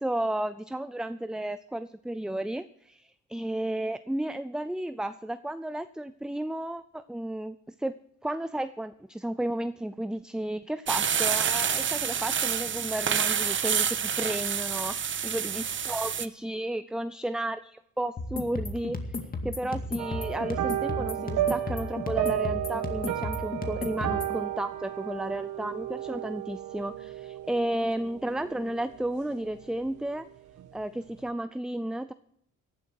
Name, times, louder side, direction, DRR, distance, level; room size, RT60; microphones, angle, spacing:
voice 1, 0.0-8.0 8.2-19.2 19.4-30.3 30.7-32.1, right 1 dB, ahead, 13 dB, 0.4 m, -33 dB
sound 1, 10.9-16.3, right 8 dB, 40° right, 0.9 m, -28 dB
sound 2, 18.2-24.4, left 2 dB, 30° left, 2.2 m, -34 dB
sound 3, 20.0-29.6 29.8-30.2 30.6-30.7, right 12 dB, 75° right, 1.4 m, -33 dB
18.0 x 11.5 x 4.7 m, 0.73 s
cardioid pair, 90°, 30 cm